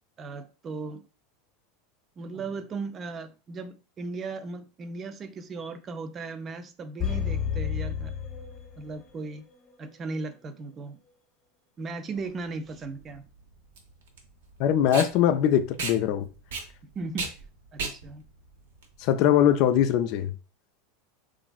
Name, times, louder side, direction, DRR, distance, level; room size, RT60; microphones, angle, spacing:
voice 1, 0.2-1.1 2.2-8.1 8.8-9.4 9.8-11.0 11.8-13.3 17.0-17.4 17.7-18.2, right 3 dB, 30° right, 0.4 m, -37 dB
sound 1, 7.0-9.2 9.5-9.6, left 8 dB, 35° left, 0.7 m, -31 dB
Packing tape duct tape, 12.2-19.6, right 4 dB, 85° right, 0.7 m, -37 dB
voice 2, 14.6-16.3 19.0-20.3, left 10 dB, 55° left, 0.3 m, -22 dB
3.0 x 2.5 x 2.3 m
supercardioid pair, 110°, 0 cm